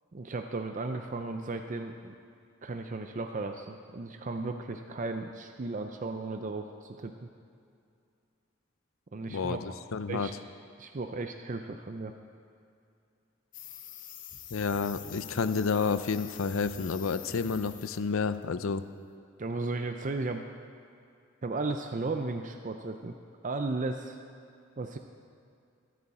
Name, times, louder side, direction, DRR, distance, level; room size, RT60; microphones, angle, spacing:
voice 1, 0.1-2.2 2.6-7.3 9.1-9.6 10.1-10.3 10.8-12.1 19.4-20.4 21.4-23.1 23.4-24.2 24.8-25.0, right 3 dB, 40° right, 5 dB, 0.5 m, -35 dB
voice 2, 9.9-10.3 14.5-18.9, left 5 dB, 85° left, 12 dB, 0.6 m, -30 dB
sound 1, 13.5-18.1 18.3-18.6, left 9 dB, 40° left, 0.8 m, -46 dB
23.5 x 8.4 x 4.2 m, 2.4 s
head